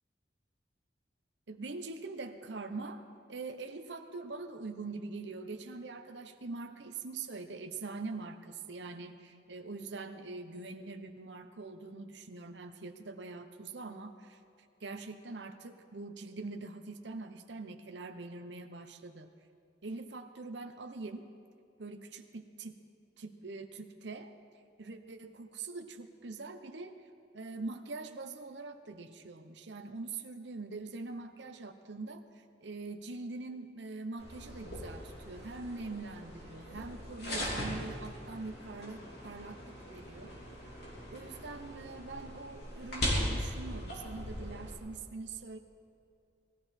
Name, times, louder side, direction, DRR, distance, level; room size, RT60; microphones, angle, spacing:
voice 1, 1.5-14.4 14.8-19.3 19.8-21.3 21.8-22.8 23.2-24.3 24.8-27.1 27.3-40.3 41.1-45.6, right 3 dB, 75° right, 6 dB, 0.9 m, -43 dB
sound 1, 34.2-44.7, equal, 60° left, 3.8 m, -39 dB
20.5 x 14.5 x 4.4 m, 2.5 s
head